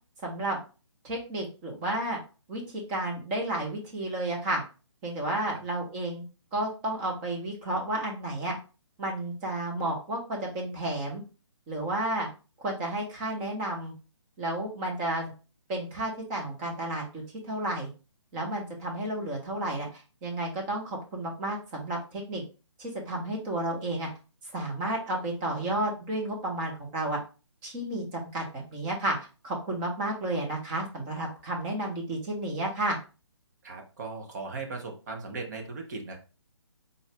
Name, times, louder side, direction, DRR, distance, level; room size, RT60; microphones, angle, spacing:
voice 1, 0.2-0.6 1.0-2.2 2.5-4.6 5.0-6.2 6.5-8.6 9.0-11.2 11.7-12.3 12.6-13.9 14.4-15.3 15.7-17.9 18.3-22.4 22.8-24.1 24.5-27.2 27.6-29.2 29.4-33.0, right 1 dB, 20° right, 0 dB, 1.1 m, -32 dB
voice 2, 33.6-36.2, right 3 dB, 40° right, 3 dB, 1.0 m, -38 dB
4.0 x 2.7 x 3.3 m, 0.33 s
figure-of-eight pair, 150°, 15 cm